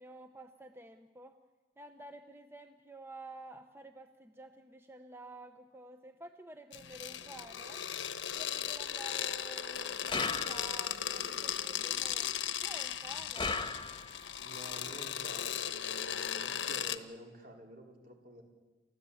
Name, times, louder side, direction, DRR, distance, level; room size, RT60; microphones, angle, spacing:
voice 1, 0.0-1.4 1.8-7.8 8.4-13.6, right 2 dB, 15° right, 7 dB, 0.8 m, -51 dB
sound 1, 6.7-17.0, left 9 dB, 85° left, 1.0 m, -37 dB
sound 2, 10.1-11.0 13.4-14.3, left 4 dB, 25° left, 1.2 m, -36 dB
voice 2, 14.4-18.4, equal, 55° right, 1 dB, 4.2 m, -50 dB
30.0 x 13.0 x 8.5 m, 1.3 s
head